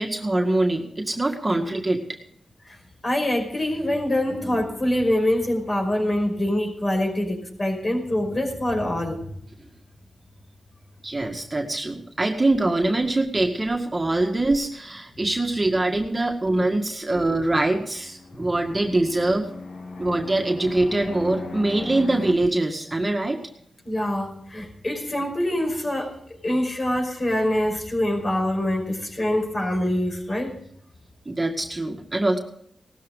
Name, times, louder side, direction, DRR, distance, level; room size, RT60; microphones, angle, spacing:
voice 1, 0.0-2.2 11.0-19.5 20.0-23.4 31.3-32.4, right 2 dB, 25° right, 2 dB, 2.0 m, -23 dB
voice 2, 3.0-9.2 18.4-18.5 23.9-26.2 26.4-30.6, left 1 dB, 40° left, 3 dB, 5.3 m, -25 dB
Fixed-wing aircraft airplane, 17.6-22.3, left 3 dB, 75° left, 2.5 m, -37 dB
18.0 x 13.5 x 3.9 m, 0.68 s
cardioid pair, 70°, 0 cm